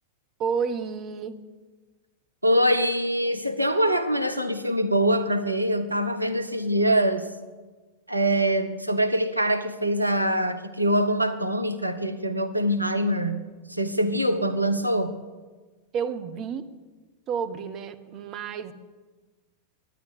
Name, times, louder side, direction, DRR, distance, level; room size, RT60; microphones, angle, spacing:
voice 1, 0.4-1.4 15.9-16.7 17.3-18.7, right 6 dB, 35° right, 9 dB, 0.9 m, -30 dB
voice 2, 2.4-7.3 8.1-13.4 13.7-15.2, equal, 85° right, 9 dB, 0.8 m, -24 dB
11.0 x 10.5 x 9.6 m, 1.3 s
figure-of-eight pair, 90°, 0 cm